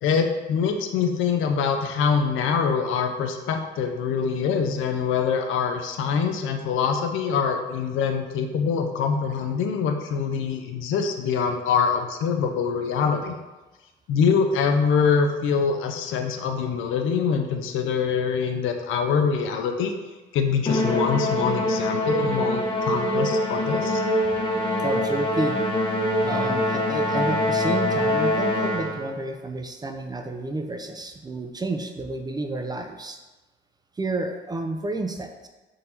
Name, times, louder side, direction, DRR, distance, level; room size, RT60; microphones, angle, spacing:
voice 1, 0.0-13.3 14.1-19.9 20.3-24.0, left 6 dB, 85° left, 5 dB, 0.5 m, -24 dB
Musical instrument, 20.7-29.1, left 1 dB, 25° left, 0.8 m, -24 dB
voice 2, 24.8-25.6 26.2-33.2 34.0-35.5, right 2 dB, 20° right, 6 dB, 0.4 m, -30 dB
3.8 x 2.6 x 4.4 m, 1.1 s
cardioid pair, 90°, 20 cm